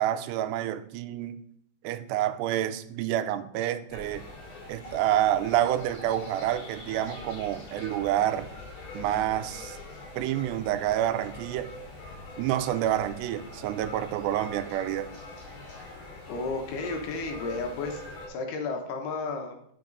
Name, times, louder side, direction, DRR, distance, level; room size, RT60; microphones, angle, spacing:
voice 1, 0.0-1.4 1.8-4.3 4.7-8.5 8.9-9.8 10.1-11.7 12.4-15.1, right 12 dB, 85° right, 11 dB, 2.7 m, -28 dB
sound 1, 3.9-18.3, left 2 dB, 50° left, 3.7 m, -43 dB
voice 2, 16.3-18.0 18.3-19.7, left 3 dB, 75° left, 3 dB, 3.0 m, -33 dB
8.9 x 6.4 x 3.9 m, 0.68 s
omnidirectional pair, 4.8 m